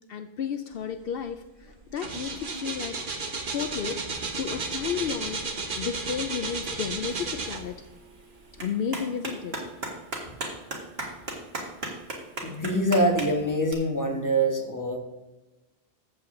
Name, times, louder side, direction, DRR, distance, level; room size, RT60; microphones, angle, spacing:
voice 1, 0.1-3.0 3.5-4.0 4.4-7.8 8.6-9.5, left 8 dB, 70° left, 8 dB, 0.8 m, -32 dB
sound 1, 1.2-1.4 1.7-8.0 8.5-8.6, right 3 dB, 55° right, 1.3 m, -33 dB
Clapping, 7.1-13.7, right 2 dB, 75° right, 2.0 m, -38 dB
voice 2, 12.4-15.0, right 1 dB, 20° left, 2 dB, 1.5 m, -24 dB
13.0 x 7.7 x 3.8 m, 1.1 s
omnidirectional pair, 1.1 m